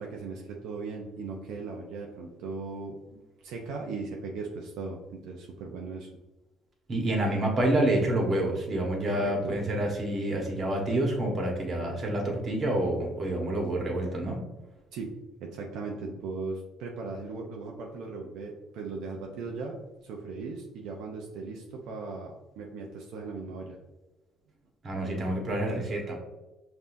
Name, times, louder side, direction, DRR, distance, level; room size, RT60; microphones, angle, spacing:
voice 1, 0.0-3.0 3.4-6.1 9.1-9.5 14.9-15.1 15.4-23.8, right 4 dB, 75° right, 0 dB, 0.5 m, -38 dB
voice 2, 6.9-14.4 24.8-26.2, right 1 dB, 40° right, 0 dB, 1.2 m, -28 dB
5.5 x 2.7 x 2.6 m, 1.1 s
cardioid pair, 90°, 0 cm